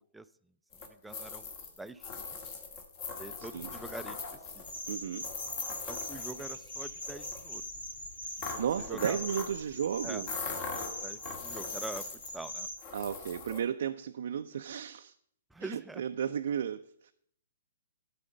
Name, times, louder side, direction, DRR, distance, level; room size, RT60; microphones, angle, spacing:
sound 1, 0.7-6.7 7.0-7.5 8.4-9.6 10.2-12.5 12.8-13.6, left 5 dB, 40° left, 1.7 m, -41 dB
voice 1, 0.8-1.5 1.8-2.4 3.2-4.7 5.9-7.6 8.5-9.2 10.0-10.2 11.0-12.1 12.3-12.7 15.5-16.0, right 2 dB, 5° right, 11 dB, 0.4 m, -44 dB
voice 2, 3.4-3.7 4.9-5.3 8.6-10.3 12.9-15.1 15.6-17.1, right 8 dB, 65° right, 7 dB, 0.4 m, -34 dB
sound 2, 4.6-12.8, left 1 dB, 85° left, 3.2 m, -42 dB
12.5 x 4.2 x 6.4 m, 0.67 s
hypercardioid pair, 130°, 0 cm